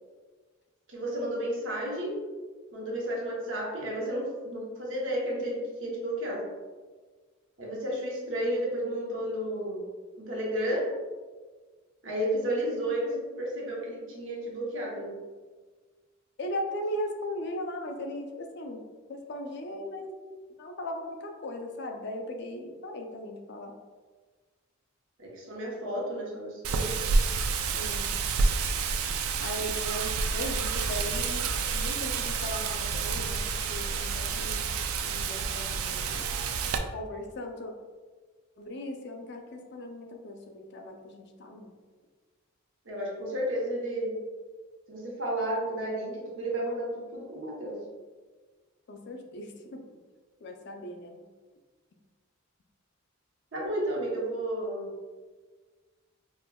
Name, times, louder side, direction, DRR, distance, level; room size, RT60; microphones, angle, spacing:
voice 1, 0.9-2.2 2.7-6.4 7.6-9.8 10.2-10.8 12.0-15.1 25.2-27.0 42.9-44.1 44.9-47.8 53.5-54.9, right 1 dB, 65° right, -4 dB, 0.8 m, -32 dB
voice 2, 16.4-18.8 19.1-20.2 20.6-23.7 27.7-28.1 29.4-34.7 35.0-36.3 36.9-37.7 38.6-41.7 48.9-49.8 50.4-51.2, left 1 dB, 55° left, 3 dB, 0.4 m, -38 dB
Wind, 26.6-36.8, right 5 dB, 90° right, 0.3 m, -29 dB
4.3 x 2.2 x 2.2 m, 1.4 s
head